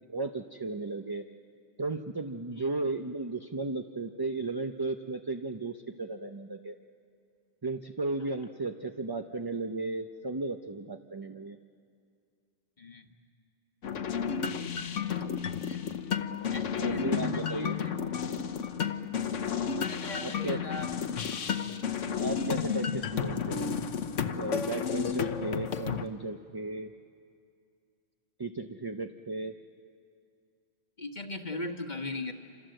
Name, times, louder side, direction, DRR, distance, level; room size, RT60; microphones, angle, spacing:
voice 1, 0.1-1.2 1.8-6.8 7.6-11.6 16.8-17.8 20.2-20.6 22.2-23.8 24.3-26.9 28.4-29.5, right 3 dB, 25° right, 5 dB, 0.6 m, -35 dB
sound 1, 13.8-26.1, left 7 dB, 85° left, 1.3 m, -32 dB
voice 2, 16.5-17.7 19.6-20.9 31.0-32.3, left 2 dB, 40° left, 5 dB, 1.4 m, -39 dB
27.5 x 27.0 x 7.8 m, 2.3 s
omnidirectional pair, 1.2 m